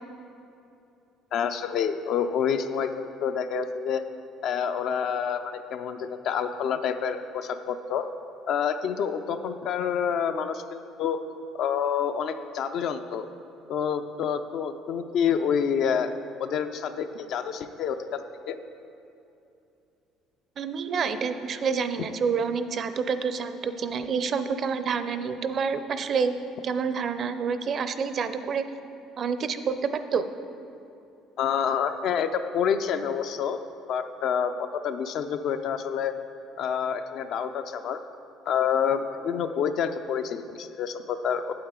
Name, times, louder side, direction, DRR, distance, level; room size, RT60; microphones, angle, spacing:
voice 1, 1.3-4.0 4.4-8.1 8.5-11.2 11.6-13.3 13.7-16.1 16.4-18.2 18.5-18.6 31.4-33.6 33.9-36.1 36.6-38.0 38.5-41.5, left 7 dB, 65° left, 9 dB, 0.4 m, -28 dB
voice 2, 20.6-26.4 26.6-28.6 29.2-30.2, right 6 dB, 50° right, 10 dB, 0.4 m, -28 dB
8.7 x 8.1 x 3.7 m, 2.7 s
cardioid pair, 100°, 0 cm